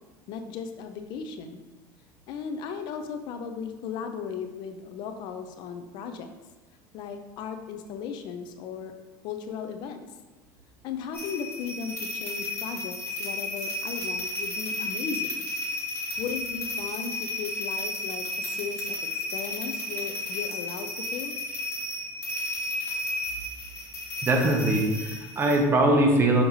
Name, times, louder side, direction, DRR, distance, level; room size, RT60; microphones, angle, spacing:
voice 1, 0.3-1.6 2.3-6.3 6.9-9.0 9.2-10.0 10.8-15.4 16.2-21.4, left 6 dB, 55° left, 7 dB, 0.6 m, -36 dB
sound 1, 11.1-25.6, left 2 dB, 30° left, 2.0 m, -33 dB
voice 2, 24.2-26.4, right 1 dB, 25° right, 1 dB, 1.1 m, -22 dB
6.4 x 5.1 x 3.1 m, 1.2 s
supercardioid pair, 120°, 9 cm